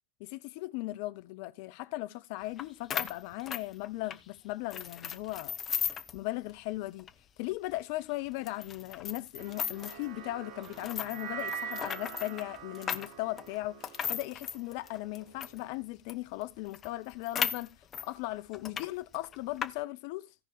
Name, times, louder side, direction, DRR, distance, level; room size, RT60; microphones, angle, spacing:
voice 1, 0.2-5.6 6.1-7.1 7.4-17.8 18.0-20.3, left 18 dB, 45° left, 0.5 m, -38 dB
sound 1, 2.6-2.7 2.9-4.2 4.7-6.2 6.5-6.6 7.0-7.1 7.7-7.8 8.5-10.0 10.6-15.6 16.1-16.2 16.4-16.5 16.7-18.1 18.5-18.9 19.1-19.7, left 8 dB, 25° left, 0.9 m, -36 dB
sound 2, 9.4-15.8, right 7 dB, 40° right, 0.8 m, -44 dB
17.5 x 5.8 x 3.4 m
figure-of-eight pair, 90°, 0 cm